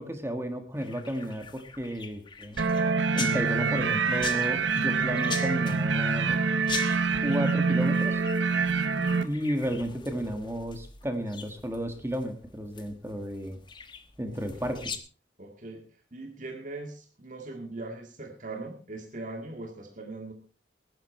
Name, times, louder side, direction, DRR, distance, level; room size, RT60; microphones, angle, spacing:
voice 1, 0.0-2.6 3.1-6.4 7.2-8.2 9.2-13.6 14.2-15.0, equal, 15° right, 7 dB, 1.6 m, -33 dB
sound 1, 0.7-15.0, left 6 dB, 25° left, 1.2 m, -42 dB
sound 2, 2.6-9.2, right 4 dB, 75° right, 1.0 m, -26 dB
voice 2, 3.1-3.8 14.2-14.9 15.4-20.3, right 2 dB, 40° right, 2 dB, 2.1 m, -41 dB
19.0 x 10.5 x 4.3 m, 0.36 s
head